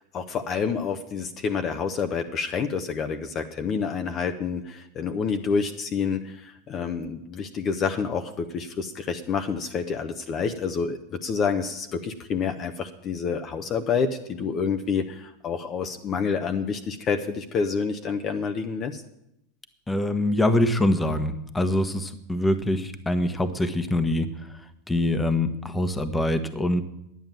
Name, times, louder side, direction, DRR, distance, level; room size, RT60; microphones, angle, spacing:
voice 1, 0.1-19.0, left 5 dB, 40° left, 6 dB, 1.0 m, -28 dB
voice 2, 19.9-24.3 24.9-26.8, left 1 dB, 10° left, 10 dB, 1.2 m, -24 dB
10.5 x 9.5 x 7.4 m, 0.83 s
figure-of-eight pair, 85°, 0 cm